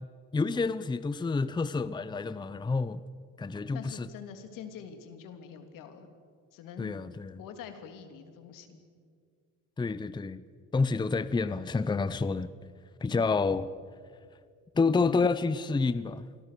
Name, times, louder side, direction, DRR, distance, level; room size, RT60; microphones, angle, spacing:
voice 1, 0.3-3.0 3.4-4.1 6.8-7.4 9.8-10.4 10.7-12.5 13.0-13.6 14.7-16.2, left 4 dB, 15° left, 15 dB, 0.7 m, -28 dB
voice 2, 3.7-6.1 6.5-7.0 7.4-8.8 13.1-13.4, left 7 dB, 75° left, 7 dB, 3.3 m, -45 dB
27.0 x 22.5 x 6.8 m, 2.1 s
cardioid pair, 105°, 33 cm